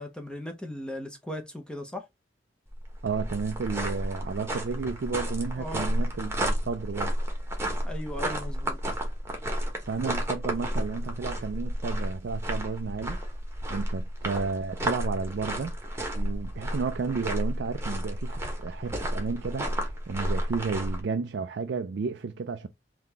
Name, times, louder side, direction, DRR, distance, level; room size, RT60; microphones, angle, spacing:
voice 1, 0.0-2.0 5.6-5.9 7.8-8.8, left 1 dB, 5° left, 0.7 m, -37 dB
sound 1, 2.7-21.0, equal, 15° right, 1.1 m, -32 dB
voice 2, 3.0-7.2 9.9-13.2 13.7-15.7 16.1-22.7, right 5 dB, 65° right, 0.4 m, -32 dB
3.7 x 2.8 x 3.5 m
head